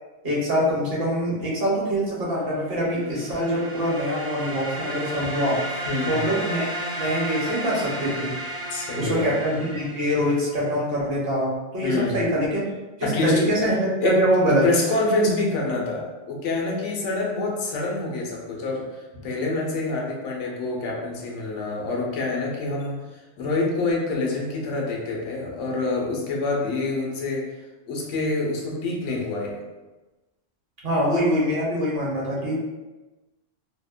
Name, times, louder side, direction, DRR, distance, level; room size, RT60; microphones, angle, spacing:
voice 1, 0.2-5.6 6.1-8.3 9.0-12.6 13.0-14.6 30.8-32.6, equal, 55° right, -6 dB, 0.9 m, -24 dB
sound 1, 2.8-10.5, right 1 dB, 85° right, 0.3 m, -33 dB
voice 2, 5.9-6.2 8.7-9.3 11.8-12.3 13.0-13.5 14.0-14.2 14.4-27.5 27.9-29.6, left 2 dB, 85° left, -1 dB, 0.9 m, -26 dB
2.8 x 2.1 x 2.3 m, 1.1 s
omnidirectional pair, 1.2 m